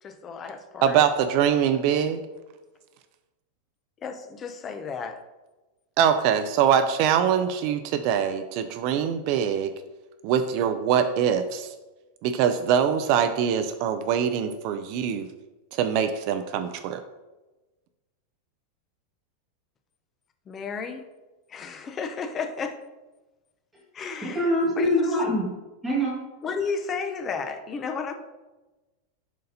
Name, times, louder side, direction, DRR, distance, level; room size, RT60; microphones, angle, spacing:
voice 1, 0.0-1.0 4.0-5.2 20.5-21.0 21.5-22.9 23.9-25.2 26.4-28.1, left 5 dB, 20° left, 7 dB, 0.5 m, -32 dB
voice 2, 0.8-2.2 6.0-9.7 10.2-11.7 12.2-15.3 15.7-17.0, right 8 dB, 40° right, 9 dB, 0.4 m, -23 dB
voice 3, 24.3-25.4 25.8-26.1, equal, 5° right, -6 dB, 1.7 m, -24 dB
10.5 x 4.0 x 2.7 m, 1.1 s
supercardioid pair, 175°, 0 cm